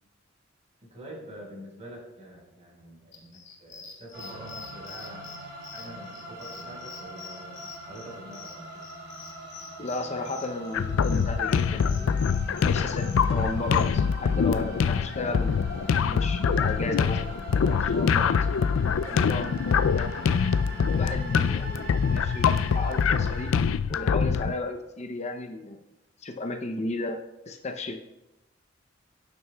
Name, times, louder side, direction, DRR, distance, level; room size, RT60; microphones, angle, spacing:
voice 1, 0.8-8.8, right 1 dB, 35° right, -2 dB, 4.4 m, -46 dB
sound 1, 3.1-13.9, left 6 dB, 60° left, 2.7 m, -46 dB
sound 2, 4.1-23.5, equal, 70° right, 3.9 m, -42 dB
voice 2, 9.8-12.1 12.6-18.5 19.1-20.2 20.9-23.5 23.9-25.8 26.2-27.2 27.5-28.0, left 2 dB, 35° left, 5 dB, 0.6 m, -34 dB
sound 3, 10.7-24.5, left 6 dB, 85° left, 0.4 m, -24 dB
17.5 x 9.6 x 2.3 m, 0.98 s
head